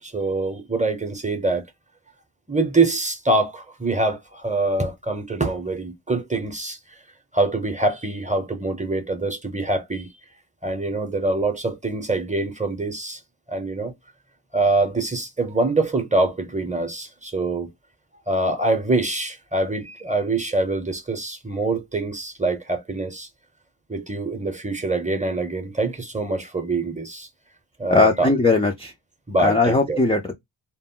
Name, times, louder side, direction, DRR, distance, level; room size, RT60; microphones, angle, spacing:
voice 1, 0.0-1.6 2.5-7.0 7.3-10.1 10.6-13.2 13.5-13.9 14.5-17.7 18.3-23.3 23.9-27.3 27.8-28.3 29.3-30.0, right 2 dB, 15° right, 0.7 m, -24 dB
voice 2, 27.9-28.9 29.4-30.3, left 3 dB, 15° left, 0.4 m, -19 dB
2.2 x 2.0 x 3.6 m
cardioid pair, 55°, 49 cm